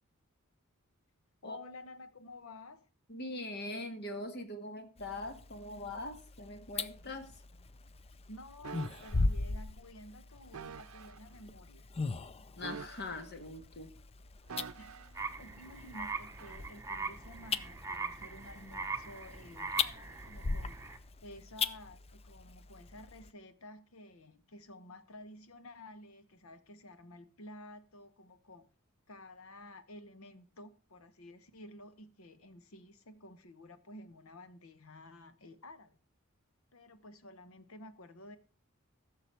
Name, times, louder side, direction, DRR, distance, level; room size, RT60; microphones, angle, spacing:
voice 1, 1.4-2.9 7.0-7.3 7.6-8.0 8.3-11.9 14.8-15.0 15.4-20.8 21.2-28.7 29.1-36.0 36.7-38.4, left 1 dB, 75° left, 1.1 m, -52 dB
voice 2, 3.1-7.3 12.6-13.9, left 2 dB, 50° left, 1.7 m, -42 dB
sound 1, 5.0-23.3, left 4 dB, 30° left, 0.5 m, -40 dB
sound 2, 8.6-9.3 10.5-11.2 12.6-13.5 14.5-15.2 16.4-16.6, right 5 dB, 90° right, 0.6 m, -46 dB
sound 3, 15.2-21.0, right 4 dB, 15° right, 0.9 m, -42 dB
14.5 x 6.8 x 4.4 m
head